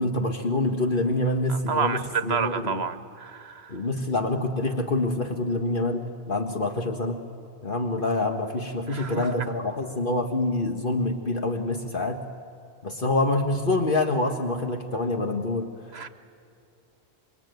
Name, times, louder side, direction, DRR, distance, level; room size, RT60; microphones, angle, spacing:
voice 1, 0.0-2.9 3.7-7.2 7.6-12.2 12.8-15.7, left 2 dB, 55° left, 4 dB, 1.7 m, -26 dB
voice 2, 1.5-3.8 8.9-9.3 15.9-16.1, right 6 dB, 80° right, 11 dB, 1.4 m, -29 dB
26.5 x 23.0 x 9.3 m, 2.6 s
omnidirectional pair, 1.1 m